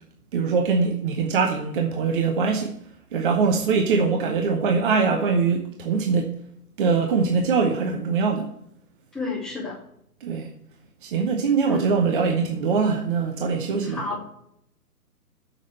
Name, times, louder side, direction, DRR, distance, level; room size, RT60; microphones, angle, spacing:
voice 1, 0.3-2.7 3.1-6.3 6.8-8.5 10.2-10.5 11.0-14.0, right 5 dB, 35° right, 1.0 m, -22 dB
voice 2, 9.1-9.8 11.7-11.8 13.9-14.2, left 3 dB, ahead, 0.7 m, -30 dB
7.2 x 6.4 x 7.6 m
hypercardioid pair, 150°, 47 cm